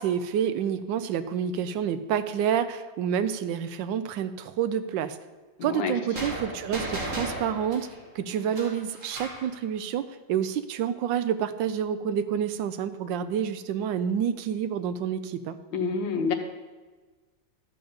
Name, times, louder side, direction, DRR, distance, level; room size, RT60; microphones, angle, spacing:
voice 1, 0.0-5.2 5.6-7.9 8.1-15.6, right 8 dB, 75° right, 11 dB, 1.3 m, -28 dB
voice 2, 5.6-5.9 15.7-16.3, left 5 dB, 75° left, 5 dB, 1.8 m, -27 dB
sound 1, 6.1-9.5, right 1 dB, 40° right, 2.3 m, -35 dB
13.0 x 5.2 x 7.1 m, 1.3 s
omnidirectional pair, 2.1 m